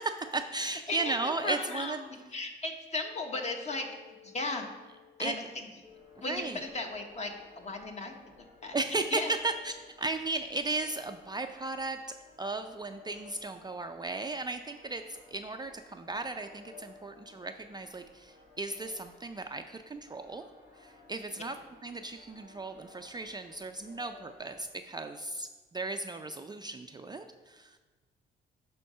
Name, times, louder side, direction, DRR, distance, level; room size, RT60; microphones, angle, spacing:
voice 1, 0.2-2.0 5.2-5.4 6.3-6.6 8.7-12.0 12.4-20.5 20.7-21.6 21.8-27.8, right 3 dB, 20° right, 6 dB, 0.4 m, -36 dB
voice 2, 0.9-4.7 5.2-5.7 6.2-8.8 9.1-9.3, left 2 dB, 35° left, 4 dB, 1.2 m, -36 dB
sound 1, 3.1-8.6, left 12 dB, 55° left, 1.1 m, -58 dB
sound 2, 5.8-24.6, left 4 dB, 75° left, 2.6 m, -58 dB
9.9 x 3.7 x 5.5 m, 1.3 s
cardioid pair, 90°, 20 cm